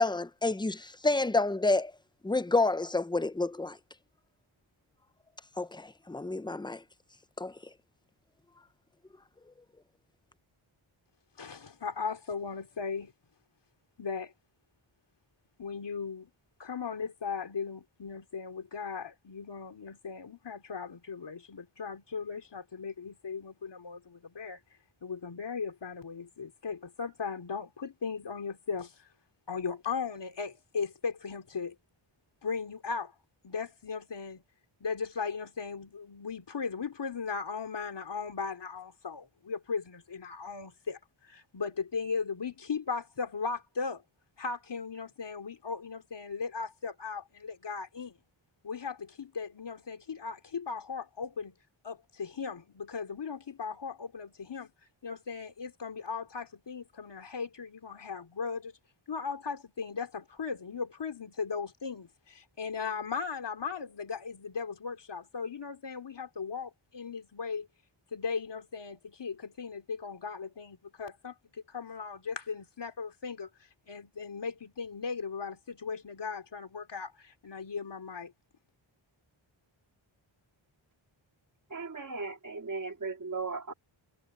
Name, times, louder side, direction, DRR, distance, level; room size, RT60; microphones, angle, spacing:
voice 1, 0.0-1.9 2.2-3.8 5.6-6.8 7.4-7.5, left 2 dB, 10° left, 0.6 m, -29 dB
voice 2, 11.4-13.1 14.0-14.3 15.6-16.3 16.6-24.6 25.0-29.1 29.5-31.7 32.4-33.1 33.4-34.4 34.8-44.0 44.4-48.1 48.6-51.5 51.8-54.7 55.0-58.8 59.1-67.7 68.1-71.3 71.7-73.5 73.9-78.3, left 5 dB, 55° left, 3.1 m, -37 dB
voice 3, 81.7-83.7, right 4 dB, 40° right, 2.7 m, -37 dB
wide cardioid pair, 115°, 49 cm